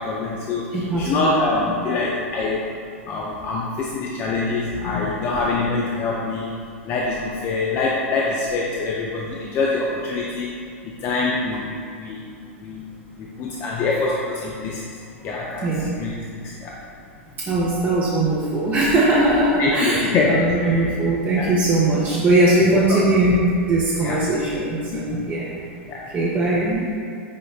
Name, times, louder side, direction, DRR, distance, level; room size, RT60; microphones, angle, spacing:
voice 1, 0.0-2.6 3.1-6.5 6.9-10.6 11.0-12.2 12.6-12.9 13.2-14.9 15.2-15.7 16.0-16.2 16.4-16.7 19.6-20.9 21.3-21.5 22.6-23.0 24.0-24.2 24.9-25.1 25.9-26.0, left 3 dB, 35° left, -4 dB, 0.4 m, -24 dB
voice 2, 0.7-1.4 15.6-15.9 17.4-25.6 26.1-26.9, right 2 dB, 25° right, -7 dB, 0.5 m, -20 dB
5.3 x 2.0 x 2.3 m, 2.4 s
hypercardioid pair, 110°, 7 cm